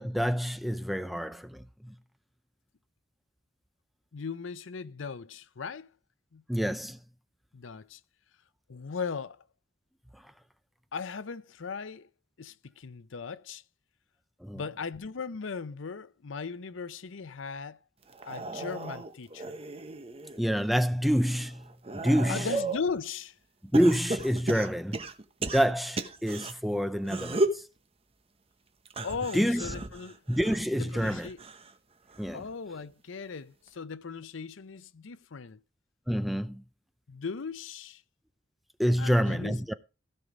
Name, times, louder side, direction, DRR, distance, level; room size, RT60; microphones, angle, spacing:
voice 1, 0.0-1.9 6.5-7.0 14.4-14.6 20.4-21.6 21.9-22.5 23.7-25.0 25.5-27.6 29.3-29.6 30.3-31.3 32.2-32.4 36.1-36.6 38.8-39.7, equal, ahead, 0.4 m, -27 dB
voice 2, 4.1-5.9 6.3-6.4 7.5-8.0 8.7-9.4 10.9-12.1 12.4-13.6 14.5-17.8 18.2-19.6 22.3-23.4 29.0-30.2 30.7-31.4 32.3-35.6 37.1-38.0 39.0-39.6, left 5 dB, 85° left, 0.6 m, -38 dB
sound 1, 18.1-20.4 20.9-22.9 23.7-26.5 27.0-27.7 28.8-31.7 32.1-32.5 33.7-33.8, right 2 dB, 30° right, 0.9 m, -35 dB
16.0 x 5.5 x 4.9 m
head